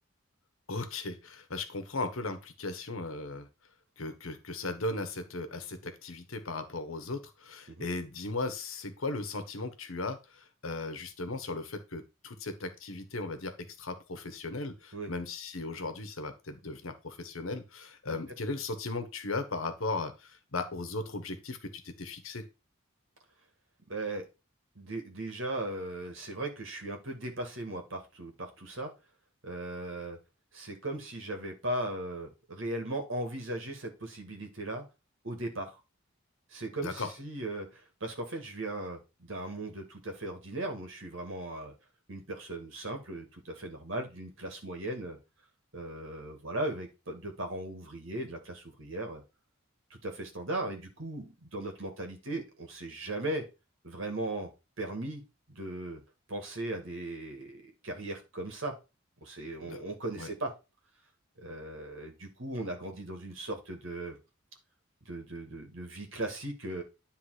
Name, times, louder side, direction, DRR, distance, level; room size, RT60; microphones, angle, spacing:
voice 1, 0.7-3.5 4.0-22.4 36.8-37.1 59.6-59.8 60.2-60.3, left 3 dB, 80° left, 8 dB, 1.2 m, -37 dB
voice 2, 23.9-24.2 24.8-28.9 29.4-30.2 30.5-34.8 35.2-35.8 36.5-41.7 42.1-45.2 45.7-49.2 49.9-53.4 53.8-54.5 54.8-55.2 55.5-56.0 56.3-58.7 59.2-60.5 61.4-64.2 65.1-66.8, right 1 dB, 70° right, 4 dB, 2.0 m, -38 dB
10.0 x 3.6 x 4.9 m, 0.28 s
head